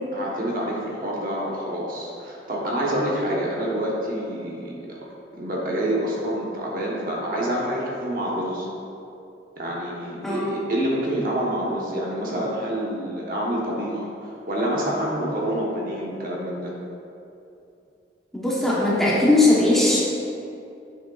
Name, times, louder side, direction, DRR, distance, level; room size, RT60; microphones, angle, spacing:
voice 1, 0.1-5.0 5.3-8.7 9.6-16.8, right 1 dB, 50° right, -4 dB, 1.1 m, -27 dB
voice 2, 18.3-20.0, left 2 dB, ahead, -7 dB, 0.9 m, -19 dB
8.2 x 6.4 x 2.4 m, 2.7 s
head